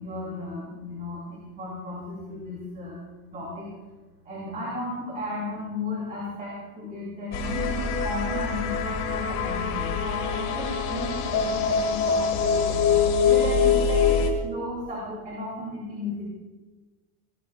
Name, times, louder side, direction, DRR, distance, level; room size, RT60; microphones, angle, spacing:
voice 1, 0.0-3.0 3.3-3.7 4.2-12.8 13.2-16.2, left 1 dB, 20° right, -4 dB, 2.7 m, -35 dB
sound 1, 7.3-14.3, left 6 dB, 40° left, 1.9 m, -24 dB
19.5 x 16.5 x 2.4 m, 1.2 s
supercardioid pair, 180°, 43 cm